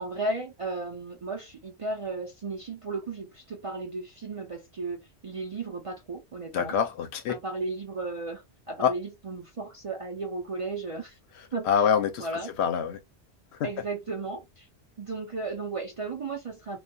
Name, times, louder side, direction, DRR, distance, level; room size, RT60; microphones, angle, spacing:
voice 1, 0.0-6.7 7.3-11.2 11.5-11.9 12.2-12.5 13.6-14.7 15.0-16.8, right 3 dB, 50° right, 0.4 m, -35 dB
voice 2, 6.5-7.4 8.8-8.9 11.7-12.3 12.6-13.0 13.6-13.7, left 7 dB, 75° left, 0.8 m, -25 dB
2.6 x 2.3 x 2.2 m
omnidirectional pair, 1.1 m